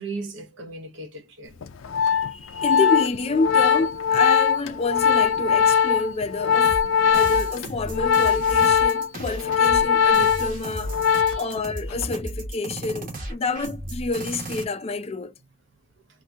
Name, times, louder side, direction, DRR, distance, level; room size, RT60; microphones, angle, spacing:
voice 1, 0.0-1.6 11.1-11.5, right 3 dB, 65° right, 0.8 m, -37 dB
Organ, 1.6-11.6 11.9-12.2, left 7 dB, 90° left, 0.5 m, -21 dB
voice 2, 2.3-6.8 7.0-10.9 11.4-15.3, left 3 dB, 30° left, 0.3 m, -28 dB
sound 1, 6.6-14.6, right 1 dB, 45° right, 1.1 m, -34 dB
2.8 x 2.6 x 3.4 m
head